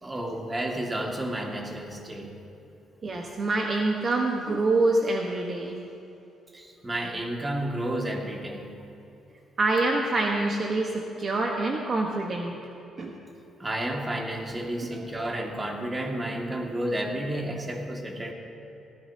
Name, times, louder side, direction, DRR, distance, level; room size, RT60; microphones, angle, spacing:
voice 1, 0.0-2.3 6.5-8.7 13.6-18.3, right 1 dB, 20° right, 1 dB, 1.9 m, -31 dB
voice 2, 3.0-5.8 9.6-12.5 13.0-13.2 14.8-15.0, right 2 dB, 45° right, 1 dB, 1.1 m, -26 dB
18.5 x 15.0 x 2.8 m, 2.9 s
cardioid pair, 90°, 0 cm